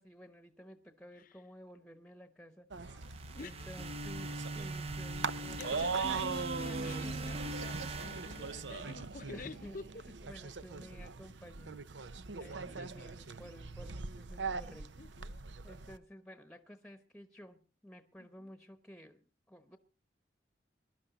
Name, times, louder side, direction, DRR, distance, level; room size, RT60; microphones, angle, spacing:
voice 1, 0.0-3.0 3.4-6.0 9.3-9.8 10.1-11.7 12.3-15.3 15.6-19.8, equal, 5° left, 1.0 m, -53 dB
sound 1, 2.7-16.0, right 4 dB, 90° right, 0.8 m, -41 dB
sound 2, 2.8-3.4 3.6-4.0 5.4-5.9 6.6-8.5 8.8-8.9, right 2 dB, 65° right, 7.2 m, -55 dB
sound 3, 3.0-9.2, right 2 dB, 35° right, 0.7 m, -41 dB
voice 2, 5.5-9.9 12.4-12.9 15.0-15.4 18.2-18.5, left 4 dB, 50° left, 0.6 m, -49 dB
22.5 x 11.5 x 4.0 m
head